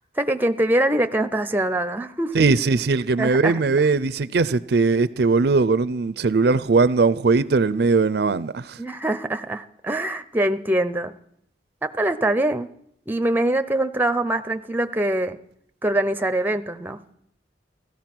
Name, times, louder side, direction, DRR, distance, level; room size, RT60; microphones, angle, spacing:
voice 1, 0.2-2.5 3.2-3.6 8.8-11.1 11.8-12.7 13.1-15.4 15.8-17.0, right 1 dB, 10° right, 0.6 m, -23 dB
voice 2, 2.3-8.8, right 4 dB, 65° right, 0.5 m, -20 dB
16.0 x 13.0 x 6.0 m
head